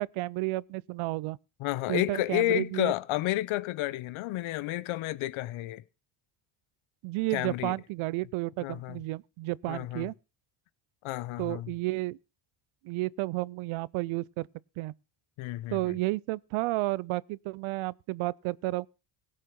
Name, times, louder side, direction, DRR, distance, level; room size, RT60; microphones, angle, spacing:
voice 1, 0.0-1.4 1.9-2.9 7.0-10.1 11.4-12.2 12.8-14.5 14.8-14.9 15.7-18.9, right 20 dB, 85° right, 0.6 m, -32 dB
voice 2, 1.6-5.8 7.3-7.8 8.6-9.0 9.7-10.1 11.0-11.7 15.4-16.0, left 16 dB, 85° left, 0.8 m, -31 dB
17.0 x 6.6 x 5.8 m
cardioid pair, 110°, 47 cm